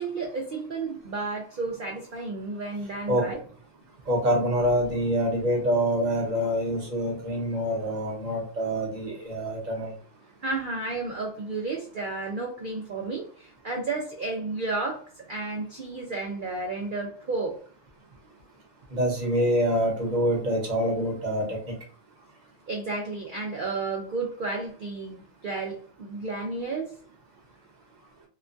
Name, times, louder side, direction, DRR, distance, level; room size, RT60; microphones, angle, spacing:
voice 1, 0.0-3.4 10.4-15.0 15.3-17.6 22.7-26.9, right 3 dB, 85° right, 0 dB, 0.4 m, -32 dB
voice 2, 4.1-9.9 18.9-21.7, equal, 35° right, -1 dB, 0.9 m, -26 dB
2.9 x 2.3 x 2.5 m, 0.42 s
omnidirectional pair, 1.6 m